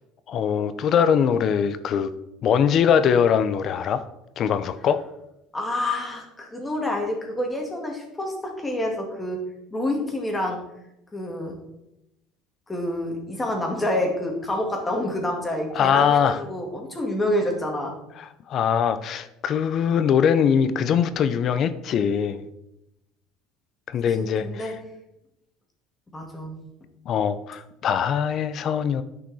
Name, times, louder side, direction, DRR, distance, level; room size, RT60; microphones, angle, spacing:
voice 1, 0.3-2.1 2.4-4.0 4.4-5.1 15.7-16.4 18.5-22.5 23.9-24.7 27.1-29.0, left 7 dB, 50° left, 13 dB, 0.7 m, -22 dB
voice 2, 5.5-9.4 9.7-10.6 11.1-11.6 12.7-17.9 24.2-24.8 26.1-26.5, left 1 dB, 15° left, 1 dB, 2.2 m, -28 dB
10.0 x 5.8 x 4.2 m, 0.87 s
supercardioid pair, 110°, 0 cm